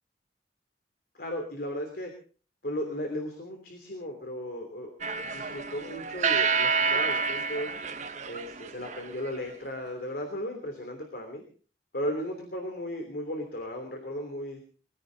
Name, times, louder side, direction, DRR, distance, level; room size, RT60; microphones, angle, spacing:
voice 1, 1.2-2.1 2.6-4.9 5.2-7.7 8.3-11.4 11.9-14.6, equal, 60° left, 4 dB, 3.2 m, -35 dB
sound 1, 5.0-9.3, right 5 dB, 45° right, 1.0 m, -29 dB
21.5 x 16.0 x 4.0 m, 0.40 s
head